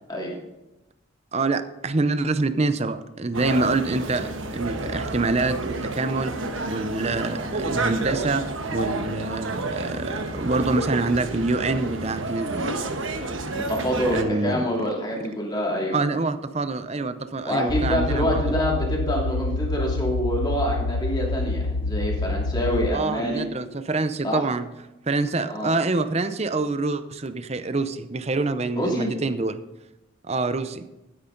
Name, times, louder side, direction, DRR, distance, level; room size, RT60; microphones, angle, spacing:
voice 1, 1.3-6.3 6.7-8.4 8.7-12.7 13.0-13.1 14.1-14.7 15.9-18.4 22.9-24.7 25.1-29.6 30.3-30.9, right 3 dB, 30° right, 11 dB, 0.6 m, -26 dB
sound 1, 3.3-14.2, right 2 dB, 75° right, 1.3 m, -30 dB
voice 2, 13.5-16.0 17.4-23.5 24.2-24.4 25.5-25.7 28.8-29.1, equal, 20° left, -3 dB, 2.9 m, -26 dB
sound 2, 17.7-22.9, left 3 dB, 75° left, 0.5 m, -27 dB
12.0 x 10.0 x 3.9 m, 0.96 s
head